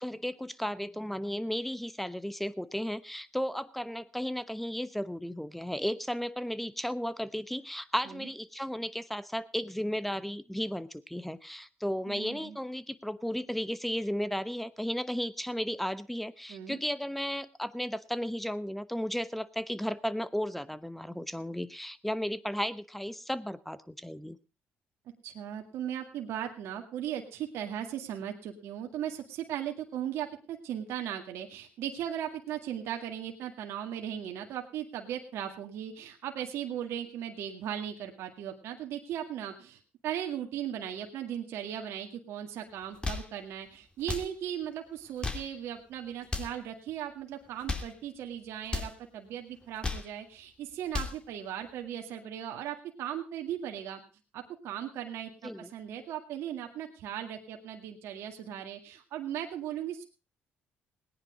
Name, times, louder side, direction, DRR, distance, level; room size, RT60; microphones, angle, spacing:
voice 1, 0.0-24.4 55.4-55.7, equal, 5° left, 16 dB, 1.0 m, -34 dB
voice 2, 12.1-12.6 16.5-16.8 25.2-54.0 54.3-60.0, right 10 dB, 75° right, 3 dB, 2.0 m, -37 dB
sound 1, 42.8-43.3 44.0-44.3 45.0-45.5 46.2-46.6 47.5-48.0 48.6-49.0 49.6-50.1 50.7-51.2, left 3 dB, 20° left, 2.8 m, -35 dB
18.0 x 10.0 x 5.1 m, 0.33 s
cardioid pair, 80°, 4 cm